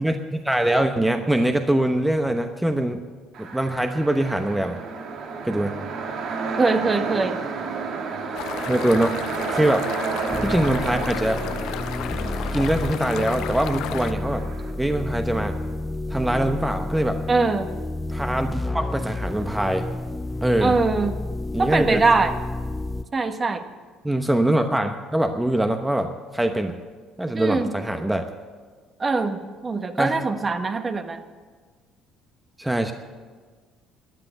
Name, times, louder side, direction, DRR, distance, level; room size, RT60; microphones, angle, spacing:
voice 1, 0.0-3.0 3.4-4.8 5.4-5.9 8.7-9.2 9.5-9.9 10.4-11.4 12.5-14.4 14.8-15.6 16.1-17.2 18.1-19.9 20.4-20.8 21.5-22.0 24.0-26.8 27.2-28.3 30.0-30.2 32.6-32.9, right 1 dB, 5° right, 6 dB, 1.0 m, -23 dB
sound 1, 3.3-14.7, right 5 dB, 65° right, 1.9 m, -31 dB
voice 2, 6.5-7.4 17.3-17.7 20.6-21.2 21.6-22.4 23.1-23.6 27.3-27.7 29.0-31.2, right 3 dB, 30° right, 7 dB, 1.3 m, -22 dB
sound 2, 8.3-14.1, left 12 dB, 75° left, 0.5 m, -34 dB
sound 3, 10.3-23.1, left 2 dB, 10° left, 0.6 m, -30 dB
14.0 x 9.6 x 9.1 m, 1.5 s
supercardioid pair, 85°, 0 cm